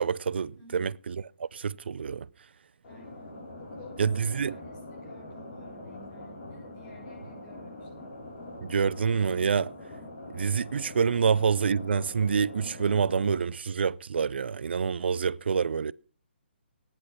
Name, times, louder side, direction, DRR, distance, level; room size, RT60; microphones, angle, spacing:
voice 1, 0.0-2.3 4.0-4.6 8.6-9.7 10.3-15.9, right 6 dB, 65° right, 0.5 m, -27 dB
voice 2, 0.5-1.0 2.9-8.1 11.2-11.3, left 2 dB, 25° left, 7.7 m, -52 dB
sound 1, 2.8-13.4, left 1 dB, 40° left, 6.4 m, -43 dB
15.0 x 10.5 x 5.9 m
figure-of-eight pair, 145°, 6 cm